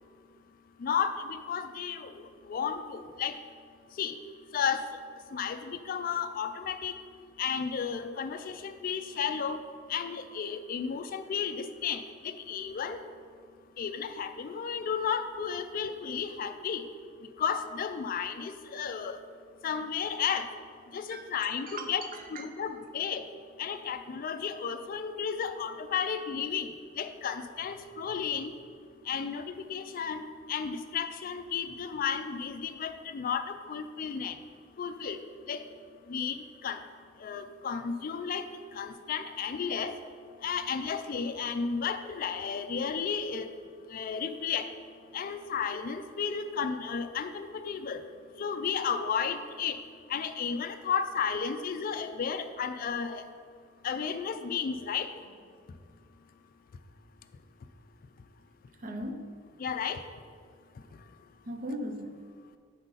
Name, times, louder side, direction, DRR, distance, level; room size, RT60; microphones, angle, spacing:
voice 1, 0.8-2.1 2.5-3.4 4.0-4.2 4.5-4.9 5.3-6.9 7.4-9.6 9.9-13.0 13.8-16.8 17.4-19.2 19.6-20.5 20.9-22.0 22.3-23.3 23.6-26.7 27.0-28.5 29.1-34.4 34.8-35.2 35.5-35.6 36.1-36.8 37.2-38.5 38.7-39.9 40.4-43.5 43.9-44.7 45.1-48.0 48.4-49.8 50.1-53.2 53.8-55.1 59.6-60.0, left 6 dB, 45° left, 9 dB, 0.3 m, -33 dB
voice 2, 21.7-22.4 58.8-59.3 61.5-62.3, equal, 45° right, 5 dB, 0.5 m, -38 dB
8.8 x 3.9 x 4.0 m, 2.1 s
head